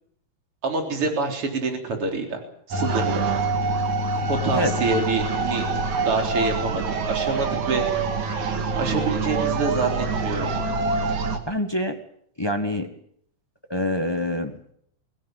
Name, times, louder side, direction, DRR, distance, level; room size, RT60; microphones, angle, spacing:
voice 1, 0.6-2.4 2.7-3.2 4.3-5.7 6.0-7.9 8.2-8.3 8.7-10.5, right 3 dB, 45° right, 3 dB, 4.6 m, -26 dB
sound 1, 2.7-11.4, right 3 dB, 75° right, 3.5 m, -25 dB
voice 2, 11.5-12.0 12.4-12.9 13.7-14.6, left 1 dB, 25° left, 6 dB, 0.5 m, -25 dB
23.0 x 16.5 x 9.3 m, 0.68 s
omnidirectional pair, 3.4 m